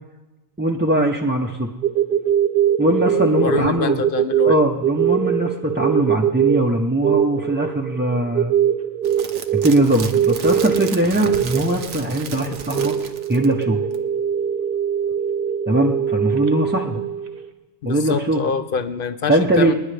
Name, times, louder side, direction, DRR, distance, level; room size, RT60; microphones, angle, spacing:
voice 1, 0.6-1.7 2.8-4.0 4.4-8.5 9.5-13.0 13.3-13.8 15.7-17.0 17.8-18.4 19.3-19.7, right 1 dB, 10° right, -1 dB, 0.5 m, -20 dB
sound 1, 1.8-17.5, right 9 dB, 55° right, 1.1 m, -22 dB
voice 2, 3.4-4.6 17.8-19.7, left 6 dB, 55° left, 10 dB, 0.7 m, -25 dB
sound 2, 9.0-13.6 13.9-14.0, right 6 dB, 85° right, 1.2 m, -34 dB
27.5 x 10.0 x 3.3 m, 1.1 s
omnidirectional pair, 1.2 m